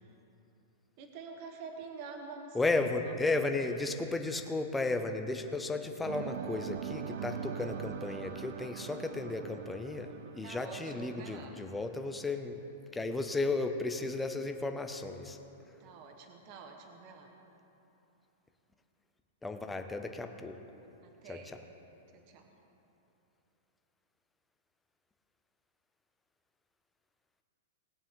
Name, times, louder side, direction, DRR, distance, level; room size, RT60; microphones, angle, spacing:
voice 1, 1.0-3.2 3.5-3.7 10.4-11.5 15.8-17.3 21.0-21.6 22.1-22.5, right 4 dB, 30° right, 3 dB, 1.1 m, -47 dB
voice 2, 2.5-12.6 12.9-15.4 19.4-20.6 21.3-21.6, left 3 dB, 5° left, 6 dB, 0.5 m, -34 dB
sound 1, 6.1-12.0, right 9 dB, 50° right, 0.5 m, -42 dB
19.0 x 9.3 x 3.7 m, 3.0 s
supercardioid pair, 180°, 0 cm